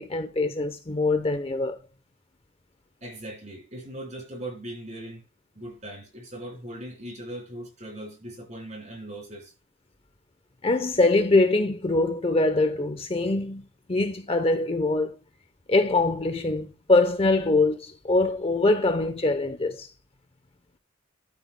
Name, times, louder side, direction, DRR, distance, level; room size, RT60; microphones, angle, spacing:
voice 1, 0.0-1.8 10.6-15.2 15.7-19.9, left 2 dB, 30° left, 0.8 m, -23 dB
voice 2, 3.0-5.2 5.5-9.5, right 1 dB, 35° right, 4.7 m, -39 dB
12.5 x 9.2 x 2.2 m
head